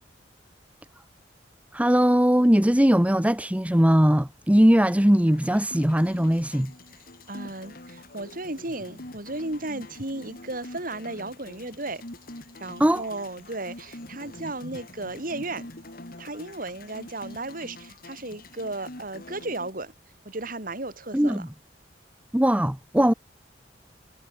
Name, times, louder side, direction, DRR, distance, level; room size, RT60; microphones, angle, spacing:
voice 1, 1.7-6.7 12.8-13.0 21.1-21.5 22.3-23.1, equal, 10° right, 1.0 m, -20 dB
sound 1, 5.3-19.7, left 1 dB, 55° left, 3.7 m, -45 dB
voice 2, 7.3-12.0 12.6-15.7 16.2-19.9 20.3-21.5, right 2 dB, 50° right, 7.0 m, -35 dB
head